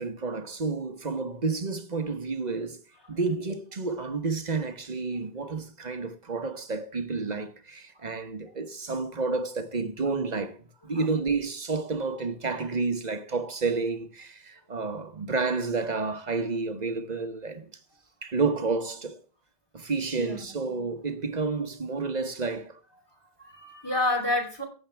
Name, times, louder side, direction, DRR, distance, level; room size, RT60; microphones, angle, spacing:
voice 1, 0.0-2.8 3.1-17.7 18.2-19.2 19.7-22.8, right 4 dB, 45° right, 1.2 m, -30 dB
voice 2, 20.1-20.9 23.4-24.6, left 2 dB, 25° left, 3.0 m, -29 dB
18.0 x 7.9 x 3.3 m
omnidirectional pair, 1.0 m